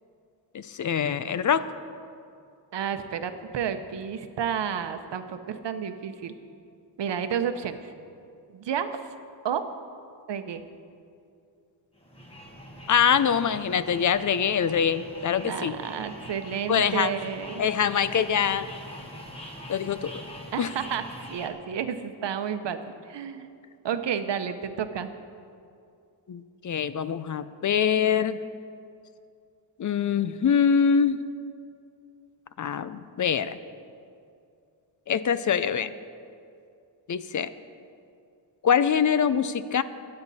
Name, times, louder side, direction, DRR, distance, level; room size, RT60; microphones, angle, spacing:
voice 1, 0.5-1.7 12.9-15.7 16.7-17.1 17.6-18.7 19.7-20.1 20.6-20.7 26.3-28.4 29.8-31.2 32.6-33.6 35.1-35.9 37.1-37.5 38.6-39.8, left 7 dB, 45° left, 14 dB, 0.5 m, -24 dB
voice 2, 2.7-6.3 7.0-7.9 8.5-9.0 9.4-9.6 10.3-10.6 15.4-17.6 20.5-23.5 23.8-25.1, right 8 dB, 70° right, 9 dB, 0.9 m, -31 dB
sound 1, 11.9-21.5, equal, 15° left, 1.6 m, -43 dB
22.5 x 8.9 x 4.2 m, 2.4 s
wide cardioid pair, 150°, 44 cm